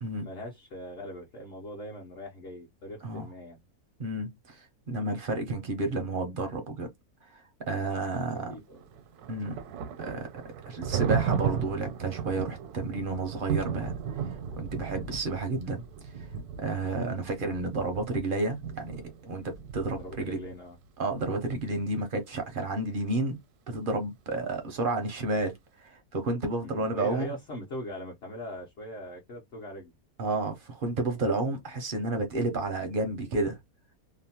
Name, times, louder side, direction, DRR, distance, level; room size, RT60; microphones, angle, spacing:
voice 1, 0.2-3.6 8.5-8.8 19.9-20.8 26.6-29.9, left 1 dB, 50° left, 0.8 m, -41 dB
voice 2, 4.0-6.9 7.3-7.4 7.7-8.5 9.3-9.6 10.0-10.3 10.7-15.8 16.6-20.4 21.0-23.4 23.7-27.3 30.2-33.6, right 2 dB, 60° right, 0.5 m, -31 dB
Thunder, 8.7-20.5, right 7 dB, 85° right, 1.1 m, -35 dB
2.9 x 2.0 x 2.8 m
omnidirectional pair, 1.6 m